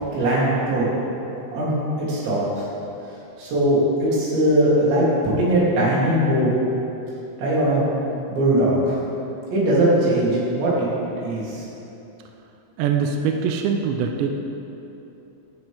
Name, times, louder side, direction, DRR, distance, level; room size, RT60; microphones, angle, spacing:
voice 1, 0.1-0.9 1.5-2.7 3.4-6.5 7.4-7.9 8.3-8.9 9.5-10.9 11.2-11.6, right 1 dB, 60° right, -8 dB, 5.2 m, -20 dB
voice 2, 12.8-14.3, right 6 dB, 80° right, 3 dB, 2.5 m, -23 dB
17.0 x 11.5 x 3.6 m, 3.0 s
omnidirectional pair, 6.0 m